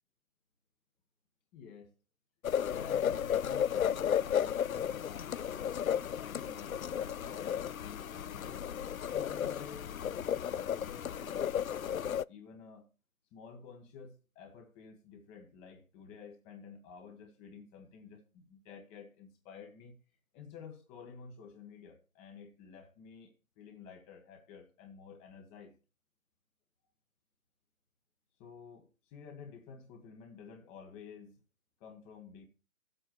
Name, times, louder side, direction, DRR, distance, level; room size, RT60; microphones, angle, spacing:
voice 1, 1.5-1.9 2.7-5.7 6.1-8.7 9.1-12.9 13.3-20.0 20.3-25.7 28.4-31.4 31.8-32.4, left 6 dB, 15° left, 1.4 m, -51 dB
sound 1, 2.4-12.2, left 9 dB, 90° left, 0.5 m, -34 dB
14.0 x 8.0 x 4.7 m
figure-of-eight pair, 145°, 40 cm